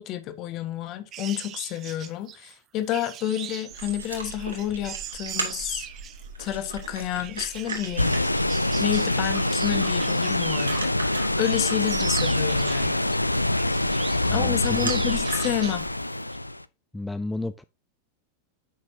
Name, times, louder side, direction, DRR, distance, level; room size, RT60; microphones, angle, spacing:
voice 1, 0.0-5.9 6.4-8.2 8.8-10.9 11.4-13.0 14.3-15.8, left 12 dB, 40° left, 1.3 m, -29 dB
sound 1, 1.1-10.9 11.3-13.2 13.6-14.3 14.6-15.8 16.1-16.4, right 12 dB, 30° right, 0.7 m, -40 dB
sound 2, 3.7-15.9, right 3 dB, 75° right, 2.4 m, -38 dB
sound 3, 8.0-16.6, left 1 dB, 85° left, 0.4 m, -25 dB
voice 2, 14.3-14.9 16.9-17.6, left 2 dB, 5° left, 0.4 m, -32 dB
9.4 x 6.4 x 2.8 m
figure-of-eight pair, 90°, 0 cm